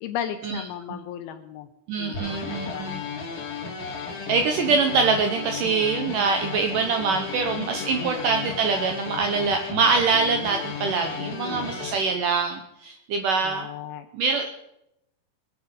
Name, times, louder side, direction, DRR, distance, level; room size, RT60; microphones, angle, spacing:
voice 1, 0.0-1.7 2.0-3.4 7.8-8.2 11.2-11.7 13.4-14.1, left 9 dB, 80° left, 7 dB, 2.6 m, -36 dB
voice 2, 1.9-3.0 4.3-13.7 14.1-14.6, right 4 dB, 75° right, 6 dB, 2.0 m, -24 dB
sound 1, 2.1-12.0, left 5 dB, 55° left, 3.5 m, -34 dB
22.0 x 8.2 x 5.2 m, 0.86 s
omnidirectional pair, 4.6 m